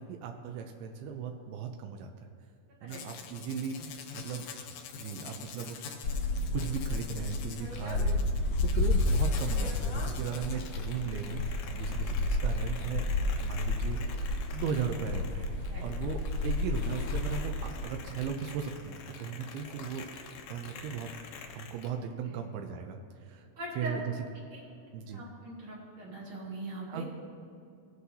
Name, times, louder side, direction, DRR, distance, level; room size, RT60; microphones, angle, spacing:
voice 1, 0.0-2.3 2.8-4.5 4.9-5.8 6.5-8.2 8.6-11.4 11.7-13.1 13.4-14.2 14.5-20.0 20.5-21.1 21.5-23.5 23.7-24.0 24.9-25.2 26.9-27.0, right 7 dB, 90° right, 4 dB, 2.6 m, -37 dB
sound 1, 2.9-21.9, left 6 dB, 75° left, 1.8 m, -46 dB
sound 2, 6.0-17.8, left 2 dB, 55° left, 1.7 m, -31 dB
voice 2, 23.6-24.0 24.5-24.6 25.1-27.0, right 1 dB, 55° right, -4 dB, 2.5 m, -41 dB
17.0 x 8.0 x 2.7 m, 2.6 s
omnidirectional pair, 4.3 m